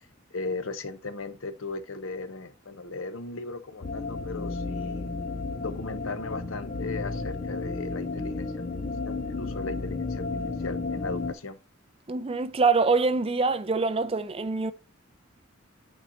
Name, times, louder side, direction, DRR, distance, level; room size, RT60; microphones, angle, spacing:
voice 1, 0.3-5.1 5.6-8.6 9.1-10.2 10.6-11.6, left 3 dB, 80° left, 0.9 m, -37 dB
sound 1, 3.8-11.3, left 3 dB, 40° left, 0.6 m, -33 dB
voice 2, 12.1-14.7, right 4 dB, 30° right, 0.5 m, -24 dB
8.8 x 4.3 x 2.8 m
head